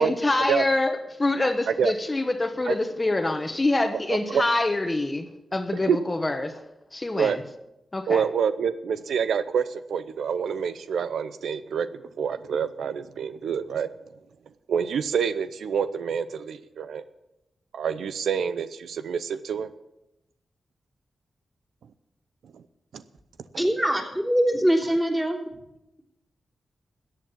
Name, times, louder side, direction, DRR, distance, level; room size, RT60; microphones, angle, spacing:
voice 1, 0.0-6.6 6.9-7.4 7.9-8.2, left 2 dB, 25° left, 1.2 m, -25 dB
voice 2, 8.1-11.9 12.2-13.9 14.7-17.0 17.7-19.7 22.9-23.0, right 7 dB, 85° right, 0.6 m, -27 dB
voice 3, 23.5-25.4, equal, 10° right, 3.3 m, -23 dB
14.0 x 8.5 x 7.3 m
cardioid pair, 65°, 0 cm